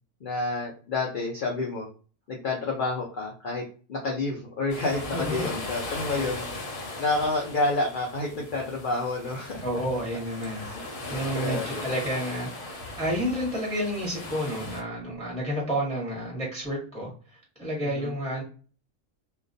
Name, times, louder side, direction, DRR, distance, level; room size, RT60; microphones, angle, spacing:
voice 1, 0.2-1.9 2.3-6.4 7.0-9.7 10.6-11.9 17.8-18.1, left 3 dB, 60° left, -1 dB, 0.5 m, -29 dB
sound 1, 4.7-14.8, left 2 dB, 85° left, 1.1 m, -38 dB
voice 2, 5.1-5.6 9.6-17.1 17.6-18.4, equal, 5° left, -3 dB, 0.8 m, -30 dB
2.3 x 2.2 x 2.5 m, 0.39 s
omnidirectional pair, 1.4 m